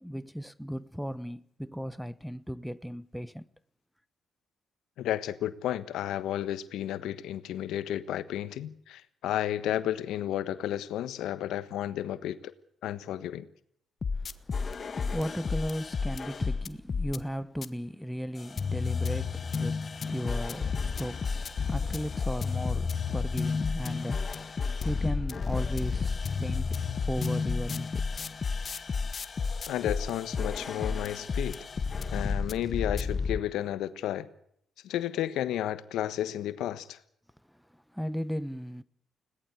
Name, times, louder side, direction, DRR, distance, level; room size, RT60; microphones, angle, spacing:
voice 1, 0.0-3.4 15.1-19.8 20.1-24.2 24.8-26.8 27.1-28.3 37.9-38.8, equal, ahead, 1.0 m, -36 dB
voice 2, 5.0-12.5 12.8-13.5 29.7-31.7 32.1-34.3 34.8-37.0, left 12 dB, 85° left, 1.3 m, -32 dB
sound 1, 14.0-17.2 17.6-17.7 18.4-33.4, left 5 dB, 40° left, 1.3 m, -31 dB
21.0 x 18.0 x 8.3 m
cardioid pair, 90°, 0 cm